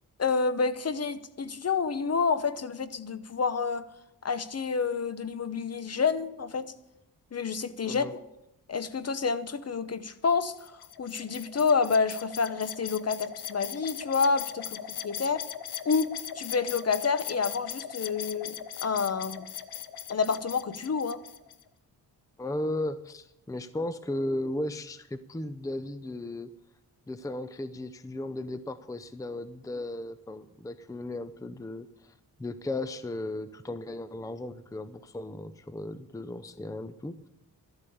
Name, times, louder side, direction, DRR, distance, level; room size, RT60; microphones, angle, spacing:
voice 1, 0.2-3.9 4.2-6.7 7.3-8.2 8.7-10.7 11.0-15.5 15.8-19.5 20.1-21.2, left 5 dB, 40° left, 13 dB, 0.9 m, -29 dB
sound 1, 10.6-21.6, left 10 dB, 85° left, 0.8 m, -39 dB
voice 2, 22.4-26.5 27.1-32.1 32.4-37.2, left 1 dB, 10° left, 12 dB, 0.6 m, -35 dB
13.0 x 8.6 x 7.0 m, 0.88 s
cardioid pair, 80°, 37 cm